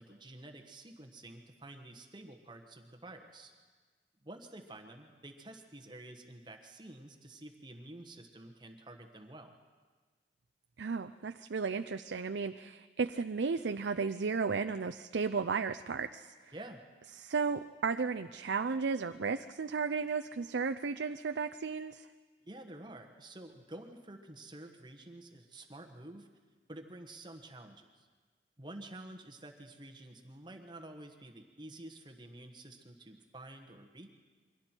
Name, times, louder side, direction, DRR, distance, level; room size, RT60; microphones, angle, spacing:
voice 1, 0.0-3.5 4.2-9.5 16.5-16.8 22.4-26.3 26.7-28.1 28.6-34.1, right 1 dB, 25° right, 4 dB, 1.2 m, -50 dB
voice 2, 10.8-16.3 17.2-22.1, right 5 dB, 85° right, 9 dB, 0.5 m, -34 dB
28.5 x 23.5 x 4.5 m, 1.4 s
head